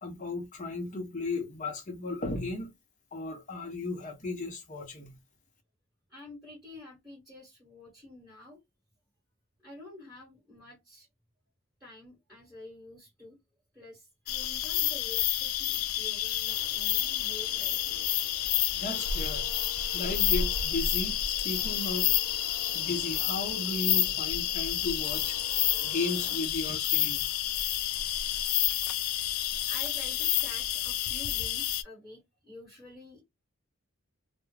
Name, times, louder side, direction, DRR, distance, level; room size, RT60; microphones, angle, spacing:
voice 1, 0.0-2.7 3.1-5.2 18.7-19.5 19.9-22.1 22.7-25.5 25.8-27.3, left 2 dB, 35° left, 0.7 m, -35 dB
voice 2, 6.1-8.6 9.6-11.1 11.8-13.4 13.7-18.1 29.6-33.2, left 1 dB, ahead, 1.3 m, -49 dB
sound 1, 14.3-31.8, left 11 dB, 85° left, 0.4 m, -29 dB
sound 2, 16.5-26.4, right 3 dB, 60° right, 0.4 m, -50 dB
2.3 x 2.1 x 3.2 m
head